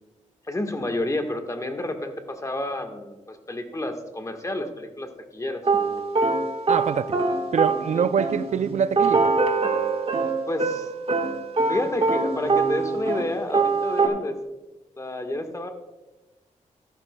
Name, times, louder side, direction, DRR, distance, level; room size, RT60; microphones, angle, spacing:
voice 1, 0.5-5.6 7.9-8.1 10.5-10.9 11.7-14.4 15.0-15.7, left 1 dB, 25° left, 1.3 m, -30 dB
sound 1, 5.6-13.3 13.5-14.1, right 4 dB, 45° right, 1.4 m, -23 dB
voice 2, 6.7-7.2 7.5-9.3, right 7 dB, 65° right, 0.4 m, -25 dB
13.0 x 12.0 x 2.2 m
cardioid pair, 85°, 13 cm